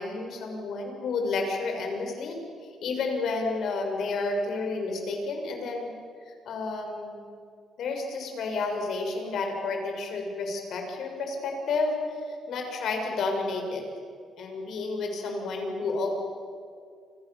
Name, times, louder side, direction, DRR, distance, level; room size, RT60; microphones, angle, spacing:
voice 1, 0.0-5.9 6.2-7.2 7.8-13.8 14.4-16.1, left 3 dB, 70° left, 3 dB, 6.5 m, -31 dB
30.0 x 26.5 x 7.3 m, 2.2 s
cardioid pair, 90°, 0 cm